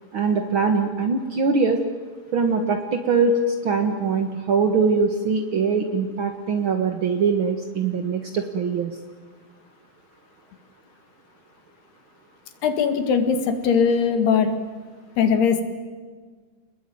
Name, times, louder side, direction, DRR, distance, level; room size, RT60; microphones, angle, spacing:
voice 1, 0.1-1.8 2.3-8.9, right 4 dB, 60° right, 5 dB, 1.3 m, -22 dB
voice 2, 12.6-14.5 15.2-15.6, left 6 dB, 80° left, 8 dB, 4.1 m, -20 dB
29.0 x 20.5 x 9.4 m, 1.5 s
omnidirectional pair, 4.6 m